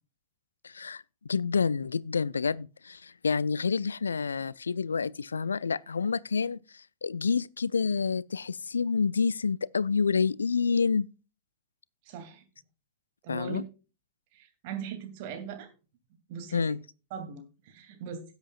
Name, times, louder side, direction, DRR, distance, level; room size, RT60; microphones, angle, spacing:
voice 1, 0.6-11.1 13.3-13.6 16.5-16.8, left 5 dB, 75° left, 0.4 m, -28 dB
voice 2, 12.0-12.4 13.2-13.6 14.3-15.7 16.3-16.8 17.1-18.2, right 7 dB, 50° right, 2.6 m, -40 dB
17.0 x 8.0 x 2.4 m
figure-of-eight pair, 90°, 0 cm